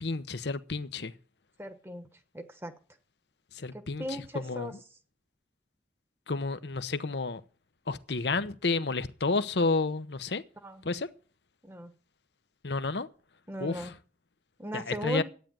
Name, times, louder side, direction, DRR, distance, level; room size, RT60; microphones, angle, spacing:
voice 1, 0.0-1.1 3.6-4.0 4.3-4.7 6.3-7.4 7.9-10.4 10.8-11.1 12.6-13.1 13.6-13.9 14.7-15.2, left 3 dB, 80° left, 0.9 m, -30 dB
voice 2, 1.6-2.1 2.3-2.7 4.0-4.7 10.6-10.8 11.6-11.9 13.5-13.9 14.6-15.2, equal, 15° right, 1.2 m, -37 dB
12.5 x 9.3 x 7.5 m
head